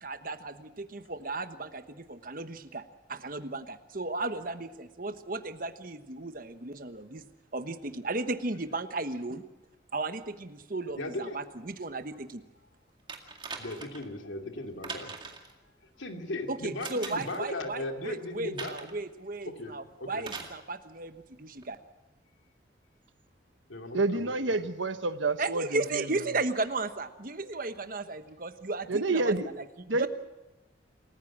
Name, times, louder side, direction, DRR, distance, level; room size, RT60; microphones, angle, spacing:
voice 1, 0.0-2.8 3.1-7.2 7.5-9.4 9.9-12.4 16.5-21.8 25.4-30.1, right 3 dB, 45° right, 10 dB, 1.2 m, -35 dB
voice 2, 10.9-11.4 13.6-15.1 16.0-18.7 19.5-19.7 20.0-20.2 23.7-24.6, left 2 dB, 85° left, 4 dB, 2.7 m, -37 dB
sound 1, 13.1-14.1 14.8-15.5 16.8-17.4 18.6-19.0 20.2-20.6 21.6-21.7, right 4 dB, 25° right, 2.1 m, -41 dB
voice 3, 23.9-26.0 28.9-29.5 29.9-30.1, right 3 dB, 80° right, 10 dB, 1.1 m, -28 dB
28.0 x 15.0 x 7.4 m, 1.0 s
head